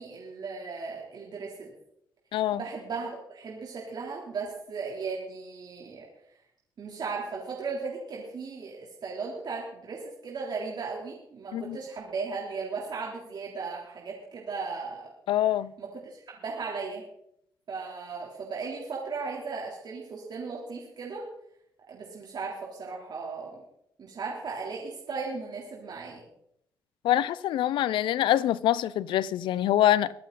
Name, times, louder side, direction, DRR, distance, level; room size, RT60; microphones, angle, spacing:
voice 1, 0.0-1.7 2.5-6.0 6.8-15.1 15.8-17.0 17.7-21.2 21.9-23.6 24.0-26.2, right 4 dB, 55° right, 3.7 m, -36 dB
voice 2, 2.3-2.6 11.5-11.8 15.3-15.7 27.0-30.1, left 12 dB, 75° left, 0.6 m, -25 dB
23.5 x 8.6 x 4.1 m
supercardioid pair, 60°, 8 cm